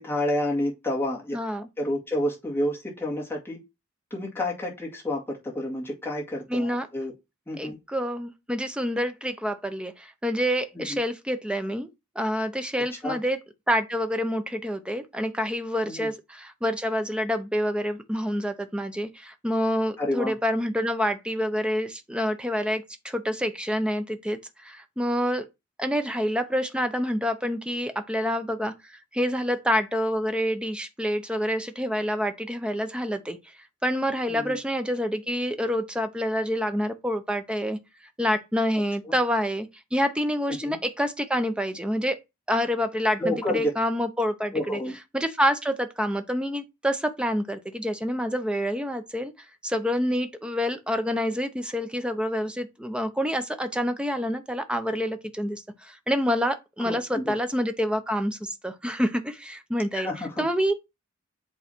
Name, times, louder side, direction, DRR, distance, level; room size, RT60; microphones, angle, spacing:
voice 1, 0.0-1.4 1.8-3.6 4.1-7.1 7.5-7.8 10.7-11.0 13.0-13.2 15.8-16.1 20.0-20.3 34.3-34.6 39.0-39.2 40.5-40.8 43.2-43.7 44.5-45.0 56.8-57.3 59.9-60.4, left 1 dB, 10° left, 2.1 m, -29 dB
voice 2, 1.3-1.7 6.5-6.9 7.6-11.9 12.2-13.4 13.7-25.4 25.8-33.4 33.8-37.8 38.2-42.2 42.5-44.8 45.1-49.3 49.6-60.1 60.4-60.7, equal, 5° right, 0.7 m, -27 dB
8.2 x 3.2 x 4.4 m
head